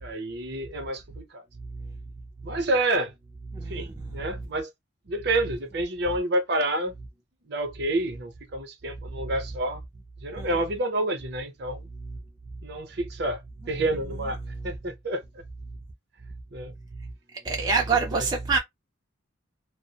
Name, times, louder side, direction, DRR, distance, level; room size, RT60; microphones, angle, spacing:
voice 1, 0.0-1.4 2.4-3.1 3.7-4.7 5.1-6.9 7.5-9.8 10.2-11.9 12.6-13.4 13.7-14.4 14.6-15.2 16.5-16.7 18.1-18.3, right 1 dB, 55° right, 0.7 m, -28 dB
voice 2, 3.6-4.3 10.3-10.5 17.4-18.6, right 4 dB, 20° right, 0.4 m, -26 dB
2.3 x 2.0 x 2.7 m
head